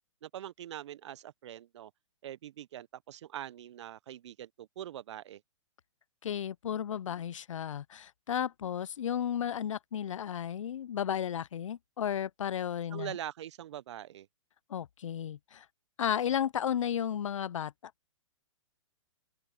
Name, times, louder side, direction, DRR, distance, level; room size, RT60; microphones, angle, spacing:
voice 1, 0.2-1.9 2.2-5.4 12.9-14.3, right 11 dB, 60° right, 0.9 m, -43 dB
voice 2, 6.2-13.2 14.7-15.6 16.0-17.7, left 9 dB, 75° left, 0.6 m, -33 dB
open air
hypercardioid pair, 125°, 16 cm